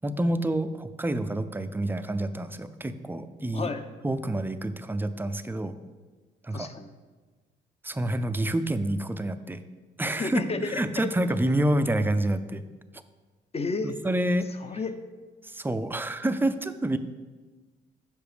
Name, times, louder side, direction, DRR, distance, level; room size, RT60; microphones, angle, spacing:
voice 1, 0.0-3.7 4.0-5.7 6.4-6.7 7.8-9.6 10.0-12.6 13.8-14.5 15.4-17.0, right 1 dB, 10° right, 10 dB, 0.4 m, -28 dB
voice 2, 6.5-6.9 10.1-10.8 13.5-13.9 14.6-15.0, left 4 dB, 30° left, 9 dB, 0.6 m, -31 dB
6.9 x 5.5 x 5.0 m, 1.3 s
cardioid pair, 90°, 20 cm